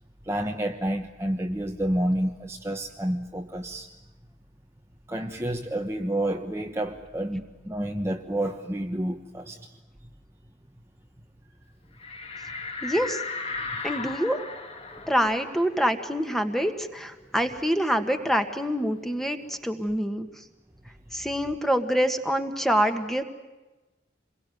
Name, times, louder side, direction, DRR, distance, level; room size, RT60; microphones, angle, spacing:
voice 1, 0.2-3.9 5.1-9.6, right 1 dB, 15° right, 2 dB, 1.1 m, -29 dB
sound 1, 12.0-17.2 17.5-17.6 18.0-19.6, left 4 dB, 35° left, 2.6 m, -37 dB
voice 2, 12.8-13.2 13.8-14.4 15.1-20.3 21.1-23.2, equal, ahead, 7 dB, 1.8 m, -26 dB
27.5 x 22.0 x 9.3 m, 1.1 s
head